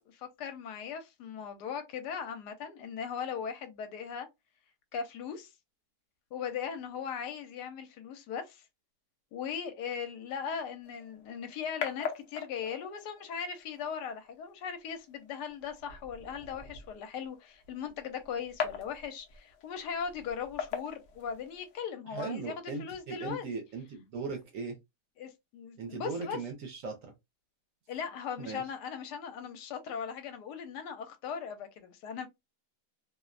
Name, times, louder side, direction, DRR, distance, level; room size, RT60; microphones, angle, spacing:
voice 1, 0.1-4.3 4.9-5.5 6.3-8.6 9.3-23.4 25.2-26.4 27.9-32.3, left 7 dB, 85° left, 1.2 m, -39 dB
sound 1, 10.8-21.8, left 7 dB, 65° left, 0.7 m, -43 dB
voice 2, 22.1-24.8 25.8-27.1 28.4-28.6, right 4 dB, 65° right, 0.9 m, -38 dB
2.8 x 2.0 x 2.3 m
omnidirectional pair, 1.8 m